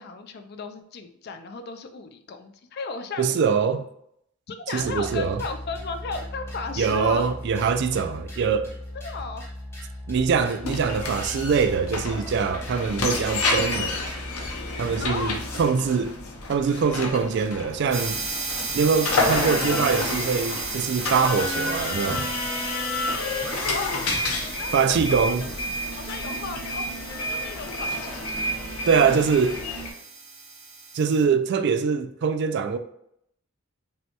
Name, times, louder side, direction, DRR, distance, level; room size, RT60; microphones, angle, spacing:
voice 1, 0.0-3.4 4.5-7.3 8.9-9.4 15.0-15.4 18.4-18.9 23.1-25.5 26.0-26.9 27.2-28.5, left 4 dB, 50° left, 0.4 m, -35 dB
voice 2, 3.2-3.9 4.7-5.4 6.8-8.7 10.1-14.0 14.8-16.2 16.5-18.2 18.7-22.3 24.7-25.5 28.9-29.6 30.9-32.8, right 6 dB, 55° right, 0.3 m, -23 dB
sound 1, 4.7-15.7, left 1 dB, 10° left, 0.9 m, -38 dB
sound 2, 10.6-29.9, left 2 dB, 85° left, 0.7 m, -30 dB
sound 3, 17.9-31.2, right 4 dB, 35° right, 0.8 m, -35 dB
5.4 x 2.2 x 2.8 m
head